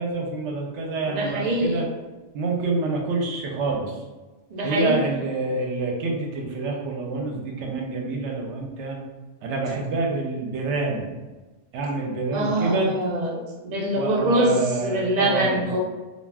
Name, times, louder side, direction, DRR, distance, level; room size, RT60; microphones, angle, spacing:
voice 1, 0.0-1.8 2.3-4.0 4.6-9.0 9.4-11.1 11.7-13.0 13.9-15.7, right 3 dB, 70° right, 0 dB, 0.8 m, -27 dB
voice 2, 1.1-1.9 4.5-5.0 12.3-14.5 14.8-15.8, right 1 dB, 55° right, -1 dB, 0.5 m, -24 dB
2.3 x 2.3 x 3.3 m, 1.2 s
omnidirectional pair, 1.3 m